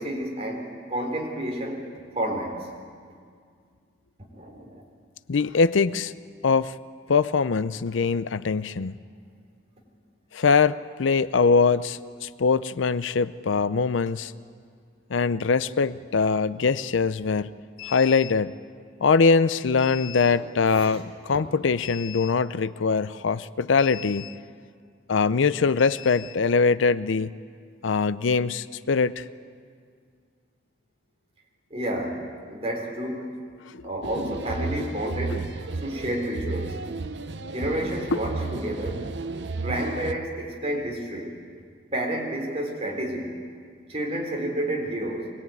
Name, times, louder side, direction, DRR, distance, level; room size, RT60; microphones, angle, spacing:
voice 1, 0.0-1.9 2.1-2.7 4.3-4.8 20.3-21.0 31.7-33.3 33.8-35.4 35.8-36.8 37.5-39.1 39.6-41.3 41.9-43.4 43.9-45.3, right 1 dB, 35° right, 0 dB, 4.1 m, -30 dB
voice 2, 5.3-6.1 6.4-6.8 7.1-8.9 10.3-14.3 15.1-18.6 19.0-24.3 25.1-27.3 27.8-29.2 38.1-38.2, left 5 dB, 85° left, 15 dB, 0.5 m, -22 dB
sound 1, 34.0-40.1, right 3 dB, 70° right, 0.8 m, -33 dB
24.5 x 20.0 x 9.3 m, 2.1 s
head